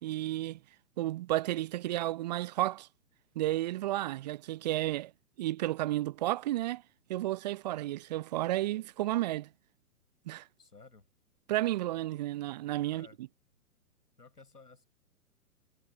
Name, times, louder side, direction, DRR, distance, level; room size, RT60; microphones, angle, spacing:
voice 1, 0.0-0.6 1.0-2.9 3.4-5.1 5.4-6.8 7.1-9.5 10.3-10.5 11.5-13.1, right 15 dB, 25° right, 0.8 m, -32 dB
voice 2, 10.6-11.1 12.9-13.2 14.2-14.8, left 4 dB, 80° left, 7.7 m, -55 dB
figure-of-eight pair, 125°, 47 cm